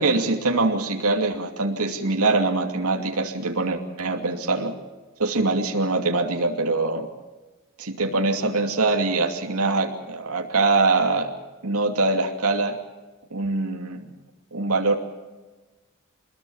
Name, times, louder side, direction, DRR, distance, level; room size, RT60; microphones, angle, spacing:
voice 1, 0.0-4.7 5.2-7.1 7.8-11.3 11.6-12.8 13.3-14.1 14.5-15.0, right 3 dB, 80° right, 2 dB, 2.6 m, -23 dB
25.5 x 21.5 x 7.2 m, 1.2 s
head